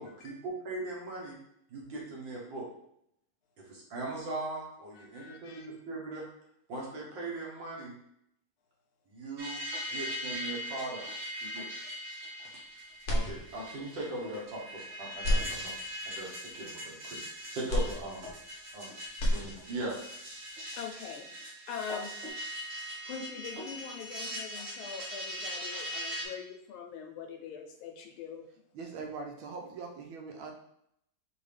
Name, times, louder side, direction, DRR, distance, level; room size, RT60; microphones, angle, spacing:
voice 1, 0.0-1.4 1.7-2.7 3.6-6.3 6.7-7.9 9.1-9.6 9.9-11.0 11.4-11.9 13.1-17.2 17.5-18.2 18.7-18.9 19.3-20.0, right 2 dB, 65° right, -3 dB, 1.9 m, -39 dB
voice 2, 5.0-5.7 20.8-22.1 23.1-28.5, left 6 dB, 85° left, 3 dB, 1.5 m, -43 dB
sound 1, 9.4-26.3, equal, 45° right, 1.4 m, -40 dB
sound 2, 13.0-13.9 14.4-14.5 15.1-16.2 17.7-18.8 19.0-20.0, left 1 dB, 60° left, 0.8 m, -32 dB
voice 3, 28.7-30.5, right 4 dB, 85° right, 3 dB, 1.4 m, -41 dB
5.3 x 2.7 x 3.3 m, 0.74 s
omnidirectional pair, 2.3 m